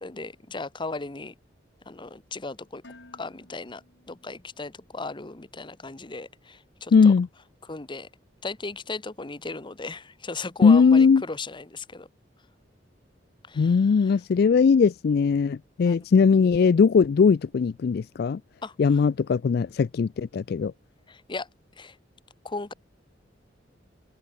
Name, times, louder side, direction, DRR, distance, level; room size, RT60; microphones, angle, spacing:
voice 1, 0.0-1.3 1.9-2.8 3.1-3.8 4.1-7.1 7.6-8.1 8.4-12.1 13.5-14.2 15.8-16.3 18.6-19.0 21.1-21.5 21.8-22.0 22.4-22.7, left 3 dB, 25° left, 1.0 m, -37 dB
Dishes pots and pans, 2.8-4.9, left 2 dB, 70° left, 3.1 m, -54 dB
voice 2, 6.9-7.3 10.6-11.2 13.6-18.4 18.8-20.7, left 5 dB, 55° left, 0.3 m, -19 dB
open air
head